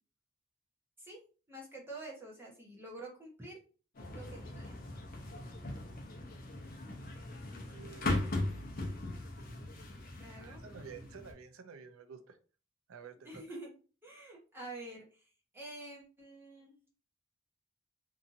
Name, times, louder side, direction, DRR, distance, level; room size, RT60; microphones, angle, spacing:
voice 1, 1.5-3.6 4.1-4.8 10.2-10.6 13.2-13.7 14.0-16.8, right 2 dB, 10° right, -3 dB, 0.9 m, -48 dB
sound 1, 4.0-11.3, left 2 dB, 45° left, 0.7 m, -39 dB
voice 2, 7.7-8.3 10.4-12.4 12.9-13.2, right 6 dB, 90° right, 8 dB, 0.5 m, -50 dB
2.8 x 2.5 x 2.6 m, 0.36 s
head